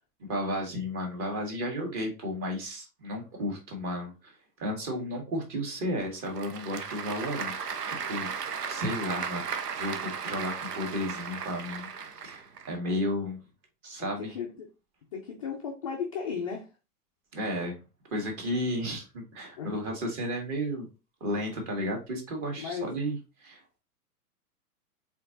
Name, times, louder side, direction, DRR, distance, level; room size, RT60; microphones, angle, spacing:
voice 1, 0.2-7.5 7.9-8.3 8.7-9.5 9.7-11.9 12.1-13.4 13.8-14.4 17.3-17.8 18.1-20.9 21.2-23.8, equal, 30° right, 1.7 m, -33 dB
Applause / Crowd, 6.0-12.7, right 6 dB, 80° right, 0.7 m, -36 dB
voice 2, 14.0-14.7 15.1-16.7 19.6-19.7 22.6-22.9, left 6 dB, 25° left, 0.4 m, -35 dB
4.3 x 3.8 x 2.7 m
figure-of-eight pair, 110°, 46 cm